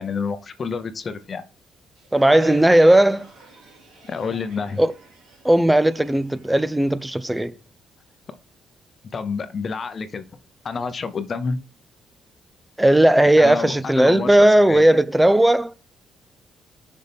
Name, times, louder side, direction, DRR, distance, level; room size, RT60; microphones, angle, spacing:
voice 1, 0.0-1.4 4.0-4.8 9.1-10.2 10.6-11.6 13.4-14.8, left 5 dB, 45° left, 0.8 m, -28 dB
Crowd, 2.0-7.4, right 3 dB, 75° right, 3.5 m, -49 dB
voice 2, 2.1-3.3 4.8-4.9 5.4-7.5 12.8-15.8, right 1 dB, 10° right, 0.5 m, -16 dB
6.3 x 5.5 x 3.5 m
cardioid pair, 90°, 0 cm